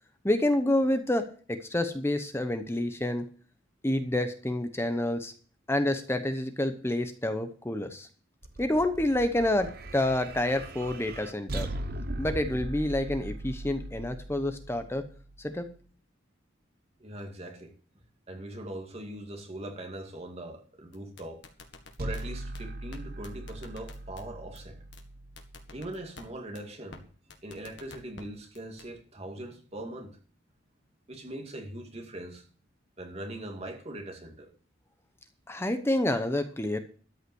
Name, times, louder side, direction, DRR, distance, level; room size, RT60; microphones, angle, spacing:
voice 1, 0.2-3.3 3.8-5.3 5.7-8.1 8.6-11.7 12.2-15.1 15.4-15.7 35.5-36.8, left 1 dB, 15° left, 0.9 m, -28 dB
sound 1, 8.4-15.7 22.0-26.1, right 1 dB, 50° right, 1.0 m, -39 dB
voice 2, 17.0-17.7 18.3-21.4 22.0-24.8 25.7-27.0 27.4-30.2 31.1-32.4 33.0-34.5, right 1 dB, 35° right, 2.3 m, -41 dB
sound 2, 20.9-22.2 22.5-22.6 22.9-23.0 23.2-24.2 24.5-24.6 24.9-25.0 25.4-26.2 26.5-26.6 26.9-27.0 27.3-28.2 28.5-28.9, left 4 dB, 65° left, 1.7 m, -48 dB
13.0 x 5.6 x 7.9 m
head